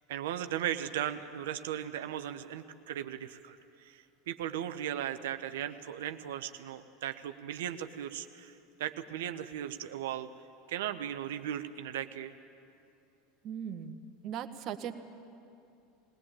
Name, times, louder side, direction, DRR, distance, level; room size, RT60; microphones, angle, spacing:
voice 1, 0.1-10.3 10.7-12.3, right 10 dB, 70° right, 9 dB, 0.9 m, -37 dB
voice 2, 13.4-14.9, right 8 dB, 45° right, 8 dB, 1.3 m, -39 dB
21.5 x 18.5 x 8.9 m, 2.6 s
hypercardioid pair, 80°, 0 cm